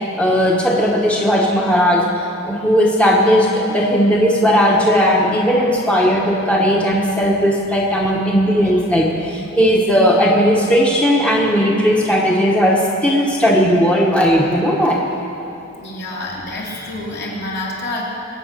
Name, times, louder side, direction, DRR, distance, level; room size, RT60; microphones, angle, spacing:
voice 1, 0.2-2.0 2.4-15.0, equal, 5° left, -2 dB, 1.1 m, -16 dB
voice 2, 15.8-18.0, left 2 dB, 55° left, -4 dB, 3.1 m, -28 dB
22.5 x 9.0 x 6.6 m, 2.9 s
head